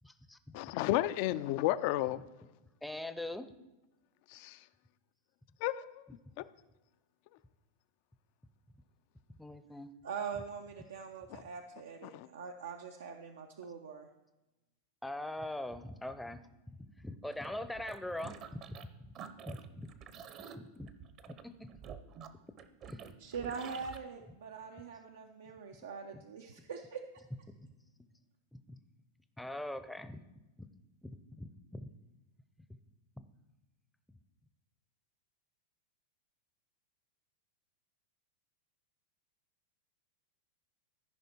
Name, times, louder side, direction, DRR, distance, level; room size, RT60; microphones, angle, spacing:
voice 1, 0.0-0.4 0.9-1.0 2.1-2.2 2.8-3.5 6.1-6.2 9.4-9.9 10.3-10.4 15.0-16.4 16.8-19.1 19.5-19.9 20.6-20.9 21.3-21.7 22.3-22.4 22.9-23.1 26.1-26.2 27.6-27.7 28.5-28.8 29.4-30.2 30.6-30.7 31.0-31.9 33.2-33.3, left 1 dB, 5° left, 0.6 m, -43 dB
voice 2, 0.5-2.2 5.6-6.0 6.4-6.5 11.3-11.4 12.0-12.3, left 15 dB, 55° left, 0.4 m, -32 dB
voice 3, 10.0-14.1 23.2-27.0, right 6 dB, 85° right, 0.7 m, -43 dB
sound 1, 17.3-18.9 19.1-24.0, right 7 dB, 40° right, 0.7 m, -49 dB
14.0 x 5.1 x 4.5 m
hypercardioid pair, 125°, 0 cm